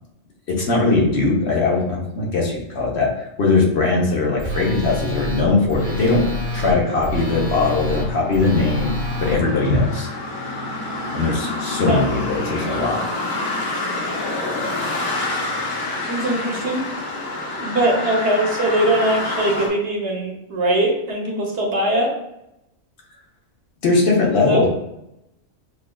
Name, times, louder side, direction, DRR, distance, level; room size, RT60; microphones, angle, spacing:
voice 1, 0.5-6.2 6.5-8.9 9.2-10.1 11.1-13.0 23.8-24.7, left 3 dB, 60° left, -2 dB, 1.1 m, -20 dB
Telephone, 4.4-9.4, equal, 20° right, 0.8 m, -27 dB
sound 1, 5.7-19.7, left 2 dB, 90° left, 1.2 m, -28 dB
voice 2, 16.1-16.8 17.6-22.1 24.4-24.7, right 1 dB, 60° right, 0 dB, 1.0 m, -21 dB
6.2 x 2.3 x 2.2 m, 0.84 s
omnidirectional pair, 1.4 m